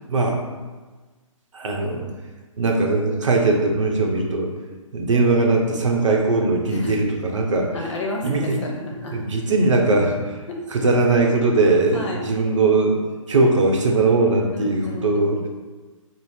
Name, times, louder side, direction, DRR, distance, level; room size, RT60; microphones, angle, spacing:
voice 1, 0.1-0.4 1.5-2.1 2.6-4.5 4.9-7.9 8.2-8.6 9.1-10.4 10.7-13.0 13.3-15.4, right 3 dB, 65° right, 1 dB, 0.7 m, -20 dB
voice 2, 7.7-9.2 10.5-10.6 11.9-12.2 14.5-15.5, left 2 dB, 60° left, -1 dB, 0.8 m, -32 dB
3.4 x 2.0 x 4.2 m, 1.3 s
figure-of-eight pair, 140°, 17 cm